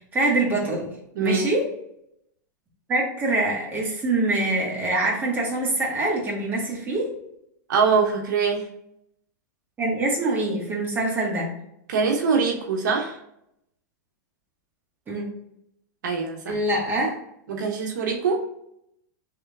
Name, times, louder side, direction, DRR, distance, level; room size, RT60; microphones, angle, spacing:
voice 1, 0.1-0.9 1.2-1.6 2.9-7.1 9.8-11.5 15.1-15.2 16.5-17.2, right 2 dB, 20° right, -3 dB, 1.5 m, -24 dB
voice 2, 1.1-1.5 7.7-8.7 11.9-13.2 16.0-16.6 17.5-18.4, right 5 dB, 75° right, 2 dB, 0.9 m, -23 dB
3.6 x 3.3 x 3.5 m, 0.77 s
hypercardioid pair, 135°, 10 cm